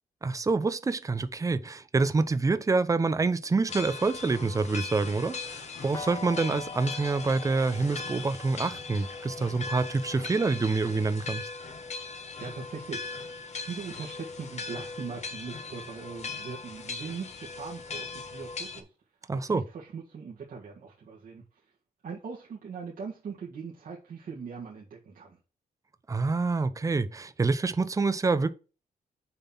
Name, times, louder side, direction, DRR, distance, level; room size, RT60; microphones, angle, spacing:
voice 1, 0.2-11.4 19.3-19.6 26.1-28.5, right 3 dB, 20° right, 0.6 m, -27 dB
sound 1, 3.7-18.8, left 4 dB, 50° left, 1.3 m, -39 dB
sound 2, 5.9-11.8, left 4 dB, 25° left, 0.8 m, -44 dB
voice 2, 12.4-18.9 19.3-21.4 22.0-25.4, right 5 dB, 65° right, 1.8 m, -41 dB
6.7 x 4.1 x 5.6 m
cardioid pair, 115°, 15 cm